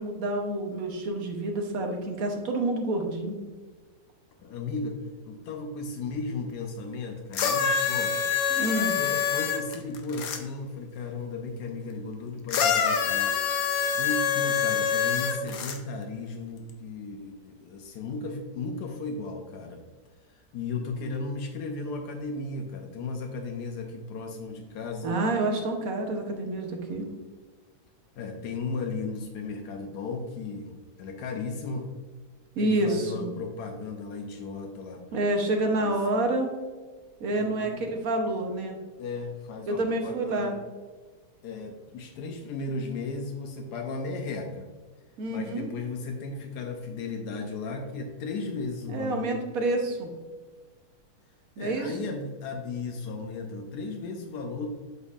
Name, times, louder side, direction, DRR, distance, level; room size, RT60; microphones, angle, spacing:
voice 1, 0.0-3.3 8.5-9.0 25.0-27.0 32.6-33.3 35.1-36.5 37.2-38.8 39.7-40.5 45.2-45.7 48.9-50.1 51.6-52.0, right 2 dB, 65° right, 3 dB, 1.3 m, -28 dB
voice 2, 4.4-5.0 5.3-8.3 9.0-13.3 14.0-19.8 20.3-25.2 28.2-31.9 32.6-35.0 35.8-35.9 37.3-37.8 39.0-40.6 41.4-44.7 45.3-49.4 51.6-54.7, left 3 dB, 90° left, 2 dB, 1.3 m, -35 dB
sound 1, 7.3-10.4 12.5-15.8 16.7-16.8, left 7 dB, 70° left, 1.2 m, -26 dB
8.1 x 5.3 x 2.4 m, 1.4 s
omnidirectional pair, 1.7 m